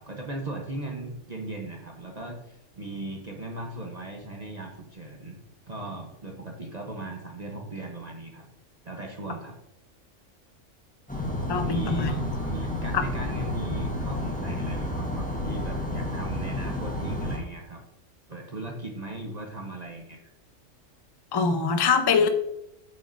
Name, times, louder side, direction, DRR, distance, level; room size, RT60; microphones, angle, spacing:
voice 1, 0.0-8.5 8.8-9.6 11.6-17.8 18.3-20.2, right 2 dB, 35° right, 1 dB, 0.9 m, -38 dB
sound 1, 11.1-17.4, left 1 dB, 5° left, 1.0 m, -30 dB
voice 2, 11.5-12.1 12.9-13.0 21.3-22.3, left 5 dB, 35° left, 8 dB, 0.4 m, -23 dB
8.5 x 6.5 x 2.6 m, 0.85 s
omnidirectional pair, 1.3 m